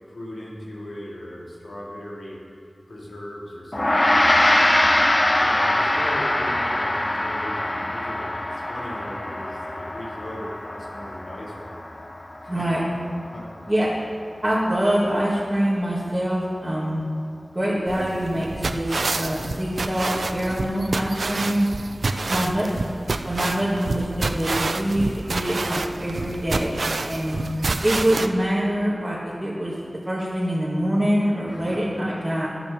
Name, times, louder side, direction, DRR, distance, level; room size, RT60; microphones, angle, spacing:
voice 1, 0.1-2.4 2.9-4.5 5.4-11.8 12.4-12.7 13.3-13.7 22.1-22.6 22.8-22.9 31.5-31.8, left 1 dB, 85° left, -4 dB, 2.4 m, -38 dB
Gong, 3.7-13.3, left 1 dB, 35° left, 0.7 m, -23 dB
voice 2, 12.5-12.8 13.7-13.9 14.4-17.0 17.5-21.7 22.3-22.7 23.2-27.4 27.8-29.7 30.1-32.5, equal, 20° right, -8 dB, 1.8 m, -24 dB
sound 1, 17.9-28.3, right 3 dB, 85° right, 0.4 m, -28 dB
11.0 x 6.9 x 6.9 m, 2.2 s
wide cardioid pair, 70°, 0 cm